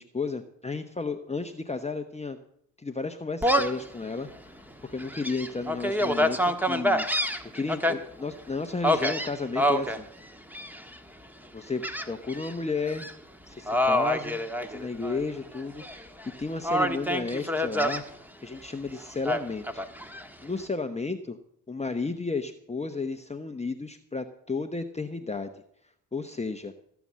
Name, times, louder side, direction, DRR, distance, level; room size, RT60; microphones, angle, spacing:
voice 1, 0.0-2.4 2.8-4.3 4.8-7.0 7.5-10.1 11.5-13.1 13.5-16.1 16.4-18.0 18.4-19.8 20.4-21.4 21.7-25.5 26.1-26.7, left 4 dB, 15° left, 6 dB, 1.0 m, -33 dB
Gull seagull, 3.4-3.8 4.4-4.5 5.0-7.9 8.8-10.0 10.5-11.0 11.8-12.5 12.9-13.1 13.7-15.2 15.5-16.3 16.6-18.0 19.2-20.3, equal, 5° right, 1.4 m, -27 dB
16.5 x 7.2 x 7.5 m, 0.69 s
supercardioid pair, 60°, 39 cm